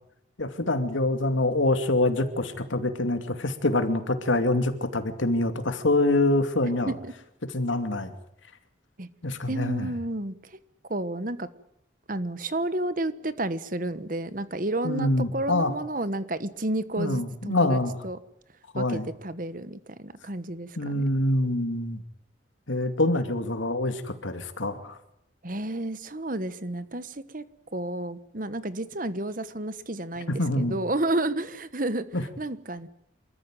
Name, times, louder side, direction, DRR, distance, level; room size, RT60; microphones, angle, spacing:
voice 1, 0.4-6.9 7.5-8.1 9.2-9.9 14.8-15.7 17.0-18.0 18.7-19.1 20.8-22.0 22.7-25.0 30.4-30.8 32.1-32.2, left 2 dB, 85° left, 8 dB, 2.6 m, -25 dB
voice 2, 9.5-10.6 10.9-11.5 12.1-18.2 18.7-21.2 25.4-27.4 27.7-32.0 32.4-32.9, right 1 dB, 45° right, 14 dB, 1.3 m, -31 dB
27.0 x 14.0 x 9.1 m, 0.80 s
head